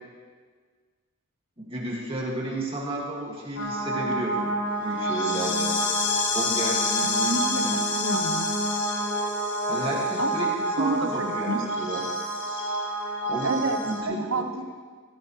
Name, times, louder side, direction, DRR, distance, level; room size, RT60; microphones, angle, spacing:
voice 1, 1.6-5.7 6.3-7.7 9.7-10.5 10.8-12.1 13.3-14.4, right 1 dB, 25° right, -4 dB, 2.2 m, -32 dB
sound 1, 3.6-14.0, equal, 50° left, 1.8 m, -27 dB
voice 2, 7.0-8.5 10.2-10.3 10.8-11.6 13.4-14.6, right 2 dB, 60° right, 6 dB, 1.1 m, -30 dB
17.0 x 15.0 x 3.3 m, 1.5 s
head